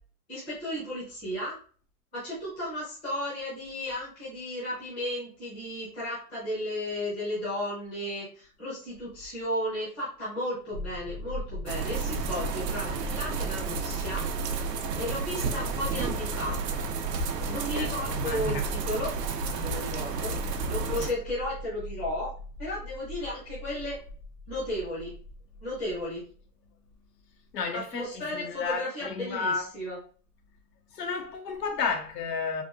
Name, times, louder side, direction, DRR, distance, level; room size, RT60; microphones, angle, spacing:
voice 1, 0.3-1.5 2.1-14.3 15.0-16.6 17.5-19.1 19.5-20.4 20.7-22.3 22.6-24.0 24.5-25.1 25.6-26.2 27.7-30.0, left 1 dB, 10° left, 0.5 m, -34 dB
sound 1, 10.7-26.4, left 1 dB, 50° left, 0.8 m, -40 dB
sound 2, 11.7-21.1, right 4 dB, 85° right, 0.7 m, -32 dB
voice 2, 17.7-18.7 27.5-29.7 30.9-32.6, left 5 dB, 85° left, 0.9 m, -32 dB
3.5 x 2.3 x 2.3 m
hypercardioid pair, 165°, 48 cm